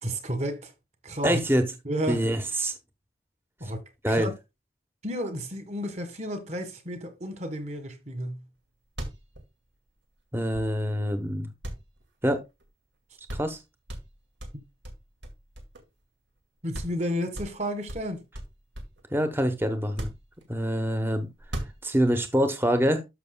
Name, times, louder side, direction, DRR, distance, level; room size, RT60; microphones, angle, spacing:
voice 1, 0.0-0.7 1.0-1.4 1.8-2.3 3.6-3.8 4.1-4.3 5.0-8.4 16.6-18.2, equal, 40° right, 1.6 m, -32 dB
voice 2, 1.2-1.7 2.1-2.7 4.0-4.3 10.3-11.5 12.2-12.4 13.3-13.6 19.1-20.1 20.5-21.3 21.8-23.0, equal, 10° right, 0.9 m, -25 dB
sound 1, 8.6-8.7 8.8-11.0 11.6-12.7 12.9-13.0 13.3-13.6 13.9-16.0 16.4-16.5 16.7-17.0 17.3-19.0 19.8-20.8 21.4-22.2, right 1 dB, 90° right, 2.1 m, -39 dB
12.5 x 6.0 x 2.2 m
head